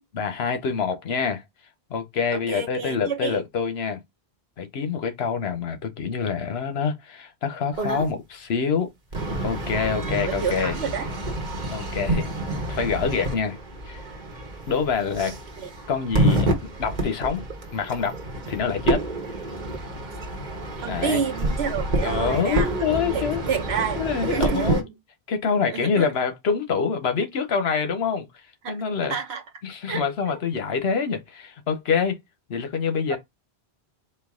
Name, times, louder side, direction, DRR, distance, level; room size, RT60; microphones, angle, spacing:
voice 1, 0.1-1.4 1.9-4.0 4.6-8.9 9.4-10.7 11.7-12.3 12.7-13.6 13.9-14.0 14.7-15.3 15.9-16.5 16.8-17.4 17.7-18.2 18.5-19.0 20.9-21.2 22.0-23.4 24.0-24.8 25.3-28.3 28.7-29.2 29.6-32.2 32.5-33.2, left 6 dB, 75° left, 1.1 m, -26 dB
voice 2, 2.3-3.4 10.1-11.1 15.6-15.7 20.8-22.8 23.1-24.9 25.7-26.1 28.6-28.8 29.0-29.4 29.8-30.4 33.1-33.2, right 6 dB, 80° right, 1.1 m, -29 dB
sound 1, 7.7-8.1 9.1-24.8, right 1 dB, 45° right, 1.1 m, -28 dB
4.4 x 2.4 x 3.6 m
omnidirectional pair, 1.1 m